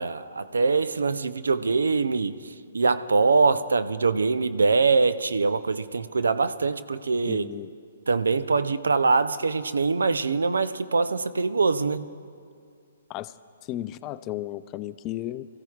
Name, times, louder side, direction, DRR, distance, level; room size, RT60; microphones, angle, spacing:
voice 1, 0.0-7.5 8.1-12.1, right 4 dB, 85° right, 13 dB, 0.5 m, -23 dB
voice 2, 7.3-7.7 13.1-13.3 13.7-15.5, left 14 dB, 30° left, 14 dB, 0.4 m, -34 dB
25.5 x 14.5 x 2.4 m, 2.2 s
hypercardioid pair, 135°, 0 cm